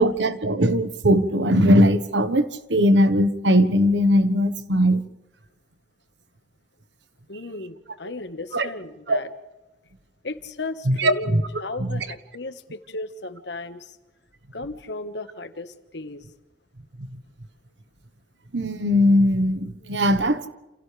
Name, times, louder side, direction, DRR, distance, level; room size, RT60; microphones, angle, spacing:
voice 1, 0.0-5.0 8.5-8.7 9.1-9.2 10.9-11.4 11.8-12.0 18.5-20.4, equal, 80° right, 1.4 m, -19 dB
voice 2, 7.3-9.3 10.2-11.3 11.6-13.9 14.5-16.2, left 2 dB, 75° left, 1.5 m, -35 dB
29.0 x 28.5 x 3.4 m
head